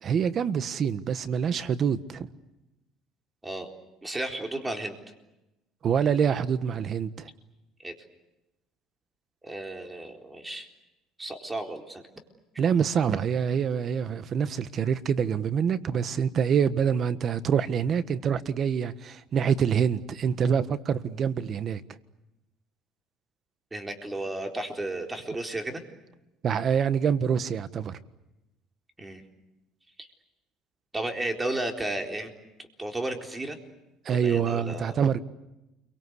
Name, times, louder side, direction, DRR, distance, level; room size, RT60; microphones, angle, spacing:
voice 1, 0.0-2.3 5.8-7.3 12.6-21.8 26.4-28.0 34.0-35.2, right 7 dB, 45° right, 1.4 m, -26 dB
voice 2, 4.0-5.0 7.8-7.9 9.4-10.7 11.2-12.0 23.7-25.8 29.0-29.2 30.0-30.1 30.9-32.3 32.8-33.6 34.1-35.0, right 2 dB, 15° right, 4.1 m, -33 dB
29.5 x 24.0 x 8.2 m
cardioid pair, 105°, 0 cm